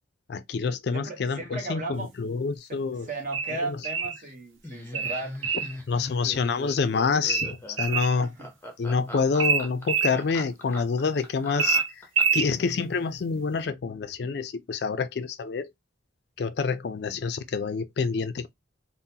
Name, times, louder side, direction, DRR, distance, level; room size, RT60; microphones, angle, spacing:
voice 1, 0.3-3.1 3.6-3.8 5.9-8.3 8.8-11.8 12.3-15.7 16.4-18.5, left 5 dB, 55° left, 0.3 m, -27 dB
voice 2, 0.9-2.1 2.7-5.8 8.2-8.5, right 3 dB, 40° right, 0.9 m, -36 dB
sound 1, 3.3-4.2 4.9-5.7 7.3-8.2 9.4-10.1 11.6-12.5, right 6 dB, 85° right, 0.6 m, -25 dB
Laughter, 4.6-12.5, equal, 10° left, 0.6 m, -41 dB
3.7 x 2.1 x 2.7 m
head